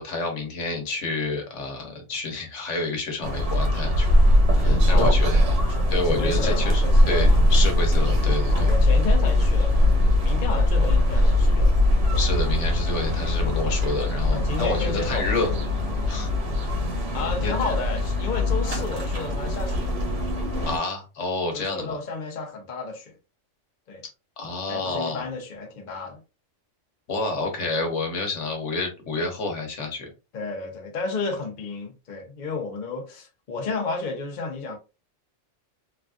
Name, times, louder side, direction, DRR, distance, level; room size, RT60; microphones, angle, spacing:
voice 1, 0.0-5.4 5.9-8.7 12.2-15.5 16.1-16.3 17.4-17.5 20.7-21.9 24.4-25.2 27.1-30.1, left 3 dB, 70° left, 1.2 m, -29 dB
sound 1, 3.2-20.8, left 1 dB, 70° right, 1.3 m, -21 dB
voice 2, 5.7-7.4 8.5-11.9 13.4-13.6 14.3-15.3 17.1-19.9 21.5-23.1 23.9-24.0 24.7-26.2 30.3-34.8, left 4 dB, 45° left, 0.7 m, -32 dB
3.3 x 2.4 x 2.3 m
omnidirectional pair, 1.3 m